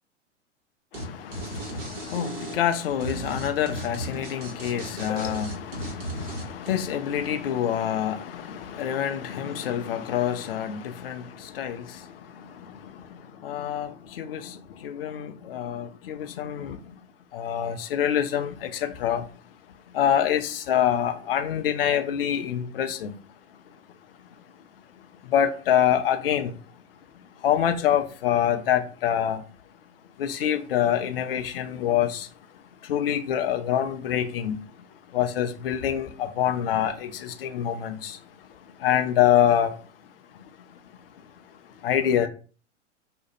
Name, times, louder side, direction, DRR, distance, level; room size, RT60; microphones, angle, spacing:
voice 1, 0.9-17.0 17.3-19.3 19.9-23.2 25.2-26.6 27.4-29.4 30.2-32.3 32.8-34.6 35.1-38.2 38.5-39.9 41.8-42.3, left 10 dB, 50° left, 0.4 m, -26 dB
sound 1, 0.9-1.0 1.3-6.7, right 1 dB, 35° right, 1.0 m, -35 dB
2.4 x 2.1 x 3.0 m
figure-of-eight pair, 95°, 37 cm